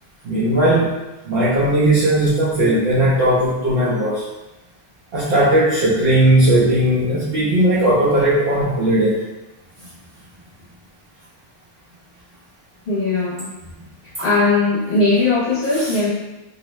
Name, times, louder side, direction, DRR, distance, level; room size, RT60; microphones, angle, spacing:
voice 1, 0.2-1.0 1.3-4.3 5.1-9.2 14.2-14.3 15.7-15.9, right 1 dB, 60° right, -9 dB, 0.8 m, -17 dB
voice 2, 12.9-13.5 14.2-16.1, left 3 dB, 60° left, -10 dB, 0.8 m, -18 dB
2.6 x 2.1 x 3.0 m, 1.0 s
omnidirectional pair, 1.2 m